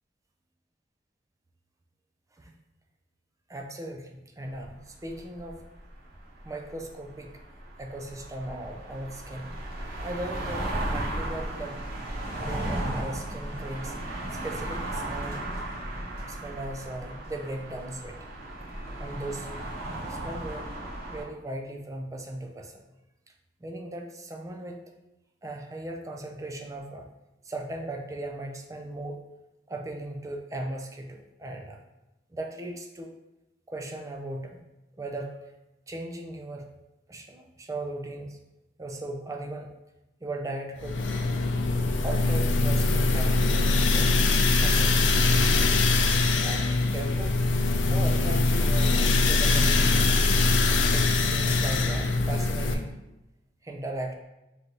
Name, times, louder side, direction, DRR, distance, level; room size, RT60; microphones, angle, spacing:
voice 1, 3.5-5.6 6.4-7.3 7.8-9.5 10.0-11.7 12.4-13.9 14.3-15.4 16.2-18.2 19.0-19.5 20.1-20.7 21.1-22.8 23.6-24.8 25.4-27.1 27.4-29.2 29.7-31.8 32.3-33.1 33.7-34.6 35.0-35.3 35.9-36.7 37.1-38.4 38.8-39.7 40.2-41.0 42.0-44.1 44.6-45.3 46.4-47.3 47.9-50.0 50.9-52.9 53.6-54.1, right 1 dB, 20° right, 2 dB, 0.4 m, -37 dB
sound 1, 4.6-21.2, right 1 dB, 60° right, 0.9 m, -35 dB
sound 2, 40.8-52.7, left 3 dB, 90° left, 0.4 m, -23 dB
3.9 x 3.2 x 2.9 m, 0.97 s
head